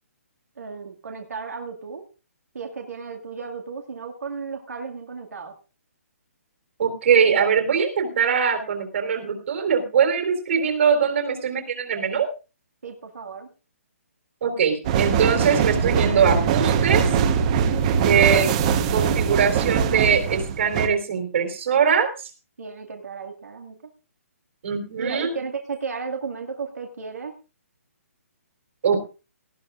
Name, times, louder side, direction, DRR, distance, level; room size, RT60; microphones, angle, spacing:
voice 1, 0.6-2.0 2.5-5.5 12.8-13.5 18.0-18.3 18.9-19.2 22.6-23.8 25.0-27.3, right 5 dB, 85° right, 2 dB, 2.2 m, -34 dB
voice 2, 6.8-12.3 14.4-17.0 18.0-18.5 18.9-22.3 24.6-25.3 28.8-29.0, right 7 dB, 50° right, 5 dB, 3.8 m, -22 dB
sound 1, 14.8-20.9, right 7 dB, 25° right, 1.1 m, -22 dB
18.5 x 14.5 x 2.5 m, 0.33 s
hypercardioid pair, 165°, 8 cm